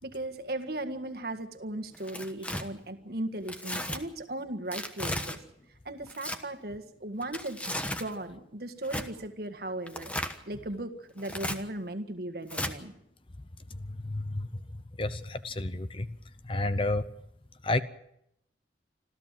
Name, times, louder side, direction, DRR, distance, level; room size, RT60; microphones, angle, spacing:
voice 1, 0.0-5.4 5.8-10.1 10.5-12.9, right 1 dB, 55° right, 7 dB, 1.8 m, -37 dB
Tearing, 1.9-2.6 3.5-4.0 4.7-5.4 6.1-6.4 7.2-8.1 8.8-9.1 9.9-10.4 11.2-11.6 12.5-12.7, left 1 dB, 5° left, 1.2 m, -34 dB
voice 2, 13.7-14.5 15.0-16.1 16.4-17.0 17.6-17.8, left 2 dB, 30° left, 12 dB, 0.8 m, -30 dB
26.5 x 14.0 x 7.6 m, 0.77 s
head